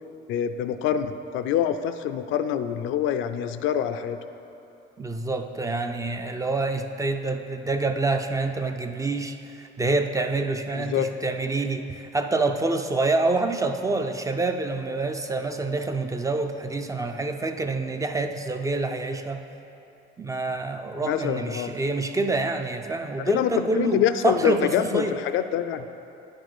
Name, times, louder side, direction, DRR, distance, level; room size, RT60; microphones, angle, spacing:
voice 1, 0.3-4.2 10.7-11.1 21.0-21.7 23.2-25.9, left 9 dB, 70° left, 9 dB, 0.5 m, -25 dB
voice 2, 5.0-19.4 20.2-25.2, right 3 dB, 15° right, 6 dB, 0.4 m, -27 dB
9.1 x 5.1 x 6.1 m, 2.8 s
cardioid pair, 125°, 21 cm